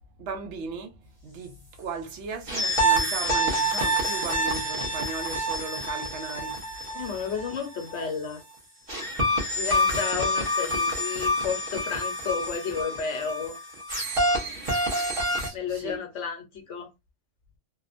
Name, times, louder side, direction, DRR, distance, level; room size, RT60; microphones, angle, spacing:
voice 1, 0.2-0.9 1.2-6.6 9.9-10.0 15.4-16.0, right 4 dB, 80° right, 0.9 m, -37 dB
sound 1, 2.5-8.1 8.9-15.5, equal, 35° right, 0.7 m, -27 dB
voice 2, 6.9-8.4 9.5-13.6 15.5-16.9, left 6 dB, 85° left, 1.1 m, -32 dB
2.8 x 2.0 x 2.4 m
omnidirectional pair, 1.2 m